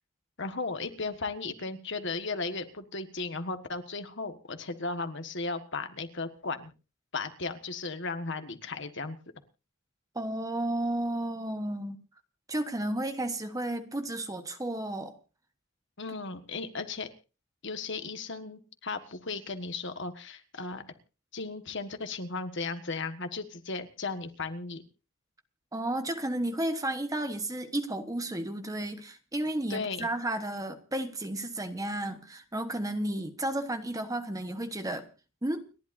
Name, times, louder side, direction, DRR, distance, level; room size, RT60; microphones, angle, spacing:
voice 1, 0.4-6.7 7.1-9.2 16.0-17.1 17.6-20.8 21.3-24.8 29.7-30.1, left 3 dB, 55° left, 1.5 m, -36 dB
voice 2, 10.1-12.0 12.5-15.1 25.7-35.1 35.4-35.6, right 1 dB, 15° right, 1.2 m, -32 dB
30.0 x 11.5 x 2.6 m
head